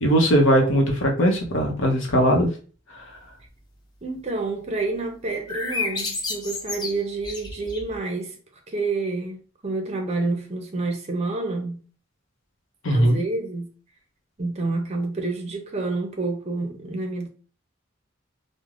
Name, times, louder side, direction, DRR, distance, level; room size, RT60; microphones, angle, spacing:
voice 1, 0.0-2.5 12.8-13.2, equal, 75° left, 0.7 m, -19 dB
voice 2, 4.0-8.4 8.7-11.8 12.9-13.7 14.4-17.3, right 3 dB, 35° right, 0.5 m, -28 dB
sound 1, 5.2-8.0, left 3 dB, 20° left, 0.6 m, -31 dB
3.2 x 2.1 x 2.4 m
head